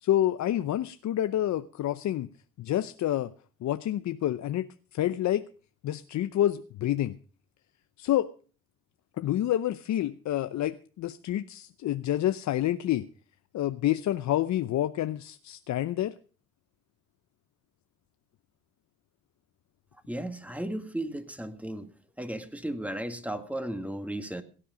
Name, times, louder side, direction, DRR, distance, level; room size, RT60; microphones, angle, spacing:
voice 1, 0.0-2.3 2.6-3.3 3.6-5.4 5.8-7.1 8.0-8.3 9.2-13.1 13.5-16.1, left 12 dB, 65° left, 0.7 m, -28 dB
voice 2, 20.1-21.9 22.2-24.4, right 1 dB, 5° right, 2.0 m, -35 dB
17.0 x 10.0 x 5.0 m
cardioid pair, 90°, 30 cm